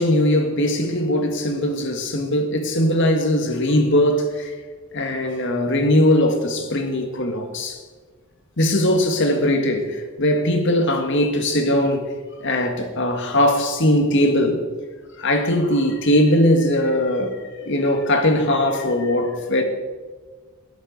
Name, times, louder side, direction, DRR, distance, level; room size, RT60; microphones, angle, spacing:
voice 1, 0.0-4.5 4.9-7.8 8.6-12.0 12.4-14.7 15.2-17.4 17.7-19.6, left 1 dB, 60° left, 2.0 m, -20 dB
20.5 x 8.1 x 5.4 m
head